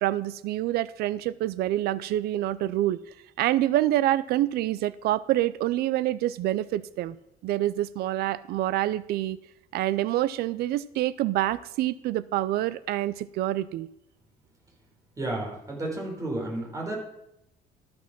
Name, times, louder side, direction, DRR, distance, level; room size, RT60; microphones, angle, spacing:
voice 1, 0.0-3.0 3.4-7.2 7.4-9.4 9.7-13.9, right 14 dB, 65° right, 18 dB, 0.5 m, -26 dB
voice 2, 15.2-17.0, right 1 dB, 20° right, -1 dB, 4.0 m, -32 dB
13.5 x 6.1 x 5.9 m, 0.79 s
cardioid pair, 140°, 17 cm